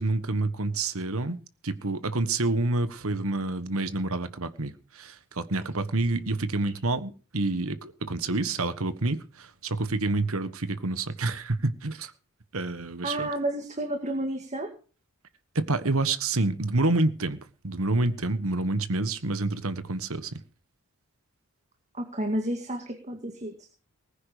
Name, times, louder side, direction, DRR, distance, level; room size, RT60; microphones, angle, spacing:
voice 1, 0.0-1.4 1.6-12.1 12.5-13.3 15.5-17.4 17.6-20.3, right 2 dB, 65° right, 1.4 m, -28 dB
voice 2, 13.0-14.7 21.9-23.7, right 1 dB, 30° right, 2.1 m, -31 dB
19.5 x 9.9 x 5.1 m
head